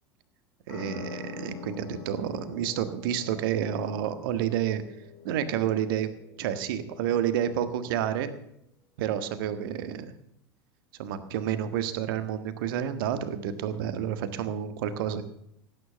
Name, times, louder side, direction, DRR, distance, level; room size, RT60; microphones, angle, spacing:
sound 1, 0.7-7.9, left 5 dB, 65° left, 4.5 m, -45 dB
voice 1, 0.7-4.8 5.2-6.1 6.4-8.3 9.0-10.1 11.0-15.2, right 9 dB, 60° right, 11 dB, 1.6 m, -29 dB
17.5 x 9.6 x 6.9 m, 0.75 s
figure-of-eight pair, 80°, 13 cm